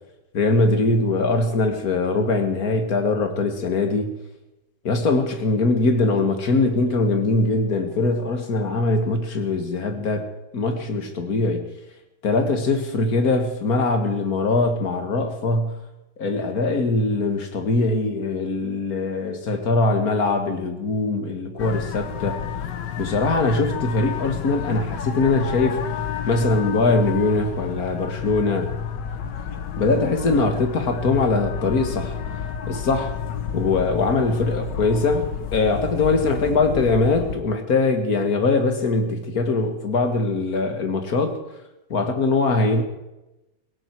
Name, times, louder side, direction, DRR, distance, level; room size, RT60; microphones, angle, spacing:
voice 1, 0.3-4.1 4.8-10.3 10.5-11.7 12.2-15.8 16.2-22.4 23.0-25.8 26.3-28.7 29.8-32.2 32.7-33.1 33.5-35.3 35.5-41.4 41.9-42.8, left 3 dB, 55° left, 6 dB, 2.2 m, -22 dB
sound 1, 21.6-37.4, left 8 dB, 75° left, 1.7 m, -30 dB
17.5 x 17.0 x 4.7 m, 0.97 s
omnidirectional pair, 1.9 m